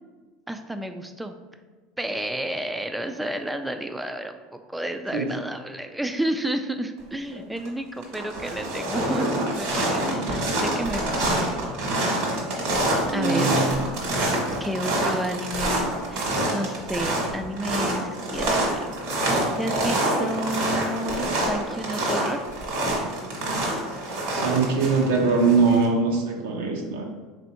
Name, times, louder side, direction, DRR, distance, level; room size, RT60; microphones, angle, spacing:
voice 1, 0.5-1.3 2.0-11.4 13.1-13.5 14.6-19.0 19.3-22.4, right 1 dB, 5° right, 7 dB, 0.3 m, -31 dB
sound 1, 7.3-7.7 8.0-25.9, right 1 dB, 70° right, 1.4 m, -26 dB
voice 2, 13.1-13.8 20.1-20.3 24.3-27.0, right 4 dB, 85° right, 1 dB, 0.8 m, -22 dB
3.4 x 2.6 x 4.3 m, 1.4 s
supercardioid pair, 115°, 0 cm